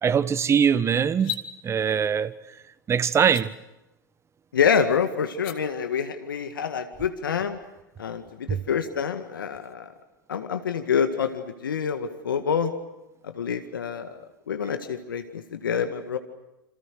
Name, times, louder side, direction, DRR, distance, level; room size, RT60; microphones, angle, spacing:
voice 1, 0.0-1.4 1.6-2.3 2.9-3.5 8.5-8.6, right 7 dB, 25° right, 1.3 m, -22 dB
sound 1, 1.1-1.5 3.2-3.5 5.3-5.6, left 9 dB, 45° left, 2.6 m, -33 dB
voice 2, 4.5-7.6 8.0-9.9 10.3-12.7 13.2-16.2, left 7 dB, 80° left, 1.9 m, -27 dB
28.5 x 27.0 x 6.7 m
hypercardioid pair, 90°, 11 cm